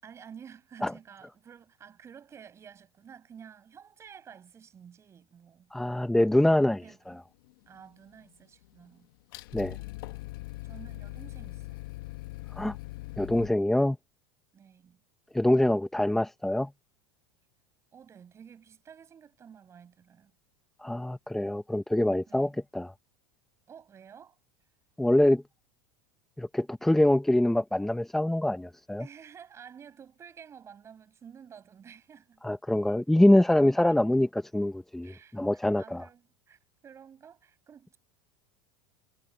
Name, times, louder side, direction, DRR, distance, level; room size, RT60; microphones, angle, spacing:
voice 1, 0.0-5.7 6.8-7.2 7.7-9.1 10.6-11.9 14.5-15.0 17.9-20.3 22.3-22.6 23.7-24.4 29.0-32.4 33.8-33.9 35.0-38.0, right 7 dB, 25° right, 6.8 m, -51 dB
voice 2, 5.7-7.2 9.5-9.8 12.6-12.8 13.2-14.0 15.3-16.7 20.8-22.9 25.0-25.4 26.4-29.1 32.4-36.1, left 1 dB, 5° left, 0.8 m, -25 dB
sound 1, 7.4-8.3 8.6-13.5, left 18 dB, 75° left, 1.2 m, -41 dB
supercardioid pair, 145°, 12 cm